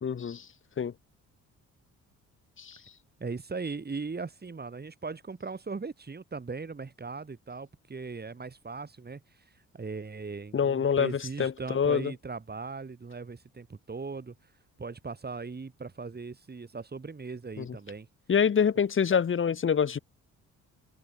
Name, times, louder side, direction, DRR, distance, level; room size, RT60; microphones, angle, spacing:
voice 1, 0.0-0.4 0.8-0.9 2.6-2.8 10.5-12.1 17.6-17.7 18.3-20.0, left 7 dB, 40° left, 1.1 m, -26 dB
voice 2, 3.2-9.2 9.7-14.3 14.8-18.1, right 4 dB, 30° right, 4.7 m, -39 dB
open air
supercardioid pair, 70°, 33 cm